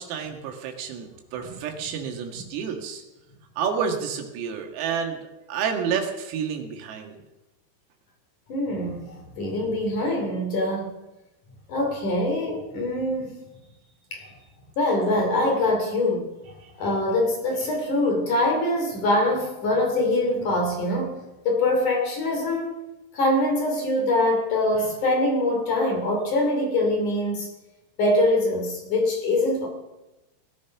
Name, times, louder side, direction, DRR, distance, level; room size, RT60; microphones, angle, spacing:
voice 1, 0.0-3.0 3.6-5.2 5.5-7.2, right 7 dB, 85° right, 3 dB, 4.6 m, -29 dB
voice 2, 8.5-11.0 11.7-13.4 14.1-14.3 14.8-16.3 16.8-22.8 23.1-27.5 28.0-29.7, left 1 dB, 45° left, 1 dB, 3.8 m, -24 dB
19.0 x 13.0 x 5.9 m, 0.99 s
omnidirectional pair, 6.0 m